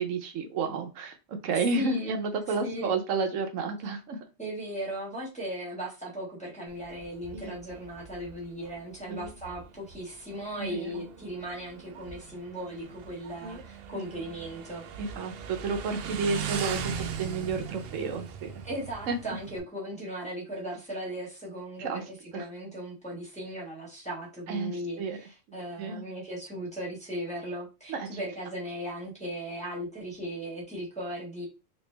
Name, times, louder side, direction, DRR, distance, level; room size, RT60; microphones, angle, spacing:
voice 1, 0.0-4.2 7.3-7.6 9.1-9.3 10.6-11.0 13.4-13.6 13.9-14.0 15.0-18.5 19.1-19.2 21.8-22.0 22.3-22.4 24.5-25.2 25.8-26.0 27.9-28.2, right 4 dB, 85° right, 5 dB, 1.1 m, -31 dB
voice 2, 1.5-2.1 2.6-2.9 4.4-14.8 18.6-22.0 22.3-31.5, equal, 5° left, -6 dB, 1.3 m, -37 dB
Motorcycle, 6.7-19.6, right 7 dB, 60° right, 0.7 m, -40 dB
3.3 x 2.5 x 3.2 m, 0.29 s
omnidirectional pair, 1.3 m